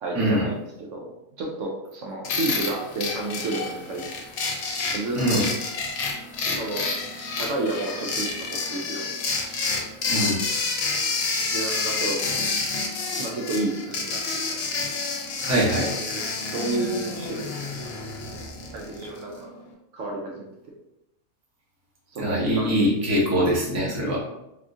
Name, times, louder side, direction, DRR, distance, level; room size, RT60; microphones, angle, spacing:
voice 1, 0.0-4.1 4.9-5.4 6.5-6.9 7.4-9.3 10.0-10.3 11.5-12.2 13.2-14.2 14.5-14.8 15.8-17.8 18.3-18.4 18.7-19.6 19.9-20.5 22.1-22.9, right 2 dB, 70° right, -1 dB, 0.9 m, -31 dB
sound 1, 2.2-19.2, left 4 dB, 80° left, 1.0 m, -29 dB
voice 2, 5.1-5.5 10.1-10.4 15.4-15.9 22.2-24.2, equal, 15° right, -5 dB, 0.6 m, -23 dB
3.4 x 2.4 x 2.6 m, 0.85 s
omnidirectional pair, 1.5 m